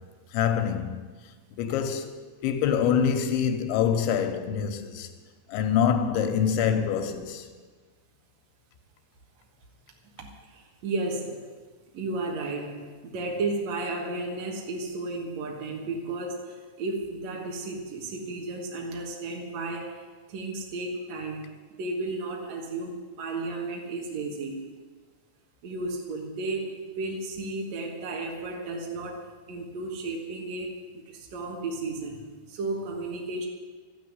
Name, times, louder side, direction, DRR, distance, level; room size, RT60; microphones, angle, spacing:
voice 1, 0.3-1.0 1.6-2.1 2.4-5.1 5.5-7.5, left 8 dB, 80° left, 3.4 m, -25 dB
voice 2, 10.2-24.6 25.6-33.5, right 2 dB, 65° right, 1.7 m, -34 dB
13.5 x 9.4 x 9.8 m
omnidirectional pair, 5.4 m